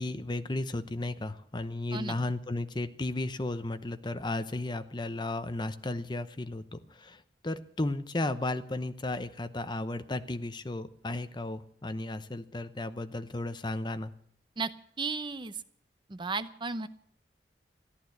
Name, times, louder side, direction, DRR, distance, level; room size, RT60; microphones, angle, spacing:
voice 1, 0.0-14.1, left 2 dB, 25° left, 10 dB, 0.7 m, -34 dB
voice 2, 15.0-15.6 16.1-16.9, right 4 dB, 25° right, 12 dB, 0.7 m, -34 dB
14.5 x 10.5 x 7.9 m, 0.67 s
head